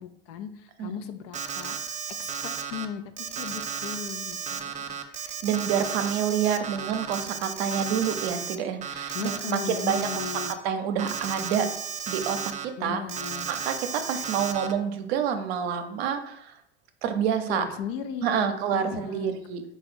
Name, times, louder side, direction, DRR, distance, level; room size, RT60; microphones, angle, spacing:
voice 1, 0.0-1.9 2.2-5.0 9.1-10.6 12.8-13.5 17.5-19.4, left 8 dB, 60° left, 10 dB, 0.5 m, -37 dB
Alarm, 1.3-2.9 3.2-8.6 8.8-10.5 11.0-12.7 13.1-14.7, right 7 dB, 25° right, 0.3 m, -34 dB
voice 2, 5.2-11.7 12.1-13.0 13.5-16.5 17.0-17.7 18.2-19.6, right 7 dB, 70° right, 7 dB, 0.6 m, -28 dB
4.3 x 2.3 x 4.2 m, 0.73 s
hypercardioid pair, 80°, 32 cm